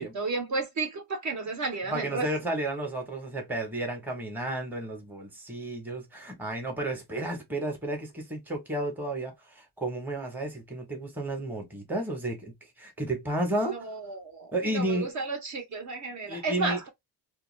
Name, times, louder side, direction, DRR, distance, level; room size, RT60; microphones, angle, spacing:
voice 1, 0.0-2.3 13.6-16.9, right 3 dB, 50° right, 0.7 m, -33 dB
voice 2, 1.9-12.5 12.8-13.9 14.5-15.1 16.3-16.8, right 1 dB, 5° right, 0.7 m, -32 dB
2.3 x 2.2 x 3.0 m
wide cardioid pair, 155°, 38 cm